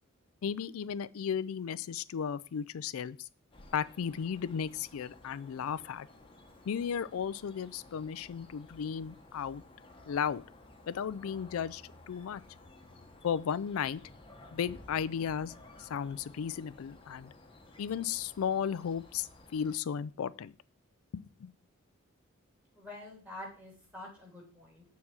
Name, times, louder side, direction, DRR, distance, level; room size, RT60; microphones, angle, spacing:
voice 1, 0.4-3.3 3.7-6.1 6.7-9.6 10.1-10.4 10.9-12.4 13.2-14.0 14.5-15.5 15.8-17.3 17.8-20.5 21.4-21.5, left 7 dB, 80° left, 0.4 m, -35 dB
sound 1, 3.5-19.8, left 2 dB, 25° left, 1.1 m, -55 dB
voice 2, 22.7-24.8, left 1 dB, 5° right, 3.1 m, -47 dB
6.7 x 4.2 x 5.7 m
head